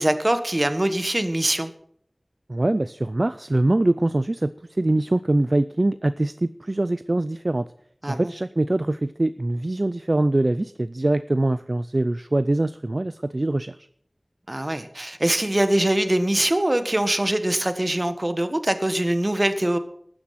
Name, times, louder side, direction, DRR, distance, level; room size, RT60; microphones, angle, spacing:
voice 1, 0.0-1.7 8.0-8.3 14.5-19.8, right 1 dB, 35° right, 10 dB, 1.4 m, -23 dB
voice 2, 2.5-7.7 8.1-13.9, right 2 dB, 50° right, 14 dB, 0.4 m, -23 dB
12.5 x 9.8 x 5.8 m, 0.64 s
wide cardioid pair, 50°, 0 cm